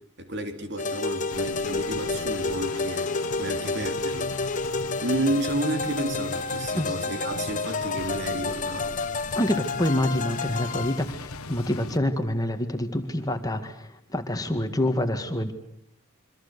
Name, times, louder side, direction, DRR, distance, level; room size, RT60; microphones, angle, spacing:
voice 1, 0.2-3.1 3.4-4.3 5.0-8.9, right 1 dB, 50° right, 6 dB, 3.5 m, -31 dB
sound 1, 0.8-11.1, left 4 dB, 35° left, 1.1 m, -30 dB
sound 2, 1.3-12.0, left 3 dB, 85° left, 1.4 m, -39 dB
voice 2, 9.3-15.5, left 1 dB, 15° left, 6 dB, 1.9 m, -27 dB
27.5 x 25.0 x 6.8 m, 0.68 s
head